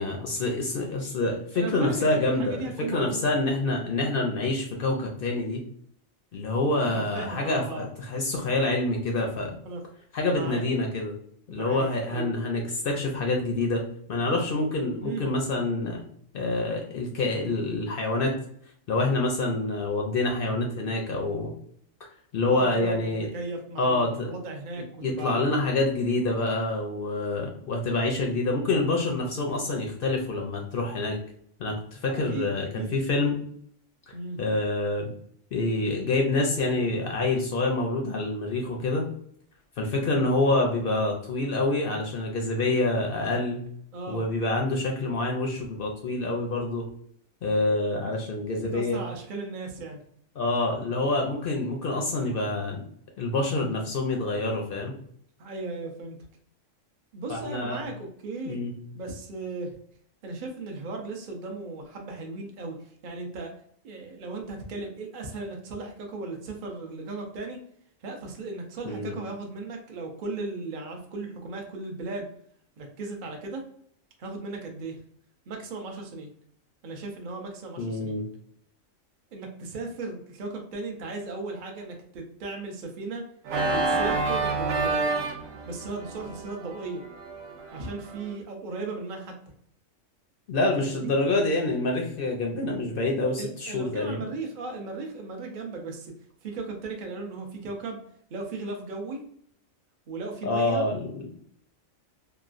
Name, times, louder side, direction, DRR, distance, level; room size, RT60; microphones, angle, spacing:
voice 1, 0.0-5.6 6.3-9.6 10.1-11.1 11.5-13.8 14.1-16.0 16.3-18.3 18.9-21.5 22.0-23.3 23.8-24.3 25.0-31.2 31.6-33.4 34.4-35.1 35.5-39.1 39.8-43.7 44.1-46.8 47.4-49.0 50.4-52.8 53.2-54.9 57.3-57.8 58.5-58.7 68.8-69.1 77.8-78.2 90.5-94.2 100.4-101.3, left 2 dB, 60° left, 1 dB, 0.6 m, -27 dB
voice 2, 1.5-3.4 6.8-7.9 9.6-9.8 10.3-10.7 11.5-12.7 15.0-15.3 22.5-25.4 32.1-32.9 34.1-34.4 43.9-44.2 48.7-50.0 55.4-56.2 57.1-58.6 58.9-59.7 60.2-63.5 63.8-67.6 68.0-72.3 72.8-73.7 74.2-75.0 75.5-76.3 76.8-78.2 79.3-83.3 83.7-85.2 85.7-87.0 87.7-89.4 90.8-91.1 93.4-96.1 96.4-98.0 98.3-99.2 100.1-100.8, right 3 dB, 55° right, 2 dB, 0.5 m, -36 dB
Organ, 83.4-88.3, right 3 dB, 80° right, 1.0 m, -29 dB
3.0 x 2.3 x 2.4 m, 0.65 s
omnidirectional pair, 1.4 m